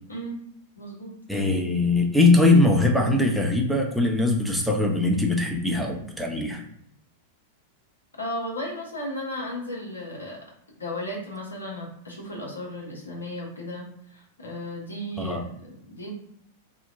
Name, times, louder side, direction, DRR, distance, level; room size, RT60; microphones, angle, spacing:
voice 1, 0.8-1.2 8.2-10.4 10.8-13.9 14.1-16.1, left 1 dB, 80° left, -2 dB, 0.8 m, -35 dB
voice 2, 1.3-6.6 15.2-15.4, left 2 dB, ahead, 0 dB, 0.5 m, -21 dB
2.7 x 2.1 x 2.5 m, 0.71 s
figure-of-eight pair, 95°, 0 cm